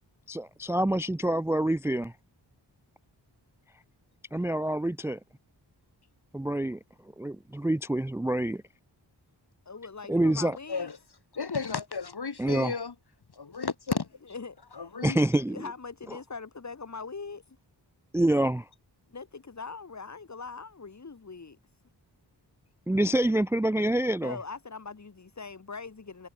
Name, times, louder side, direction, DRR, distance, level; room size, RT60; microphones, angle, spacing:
voice 1, 0.3-2.1 4.3-5.2 6.3-6.8 7.2-8.6 10.1-10.6 12.4-12.7 15.0-15.6 18.1-18.6 22.9-24.4, right 1 dB, 5° right, 0.4 m, -26 dB
voice 2, 9.7-10.9 14.3-14.9 15.5-17.4 19.1-21.6 24.2-26.3, left 4 dB, 40° left, 1.9 m, -41 dB
voice 3, 11.3-12.9 13.3-14.1 14.7-15.2, left 5 dB, 60° left, 3.2 m, -33 dB
wide cardioid pair, 80°, 44 cm